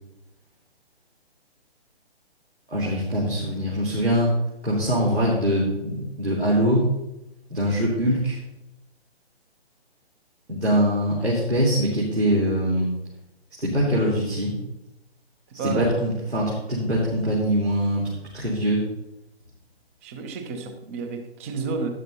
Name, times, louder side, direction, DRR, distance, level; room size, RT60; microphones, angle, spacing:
voice 1, 2.7-4.3 4.6-6.9 7.5-8.4 10.5-12.9 13.6-14.6 15.5-18.8, equal, 80° right, -6 dB, 3.6 m, -23 dB
voice 2, 15.6-16.0 20.0-21.9, right 4 dB, 15° right, 7 dB, 0.6 m, -30 dB
12.5 x 11.0 x 2.8 m, 0.88 s
figure-of-eight pair, 130°, 32 cm